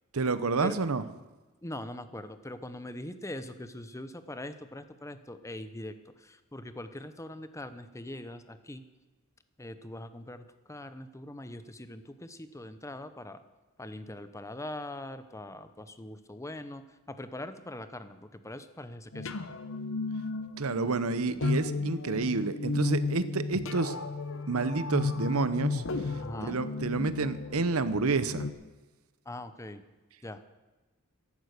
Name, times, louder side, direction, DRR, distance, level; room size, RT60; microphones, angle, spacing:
voice 1, 0.1-1.0 20.6-23.9 24.5-25.8 26.5-28.5, right 3 dB, 75° right, 13 dB, 0.9 m, -29 dB
voice 2, 1.6-8.8 9.6-13.4 13.8-19.3 26.2-26.6 29.3-29.8 30.2-30.4, left 1 dB, 15° left, 11 dB, 0.8 m, -42 dB
sound 1, 19.1-28.5, left 3 dB, 65° left, 0.9 m, -34 dB
14.5 x 11.5 x 6.6 m, 1.2 s
head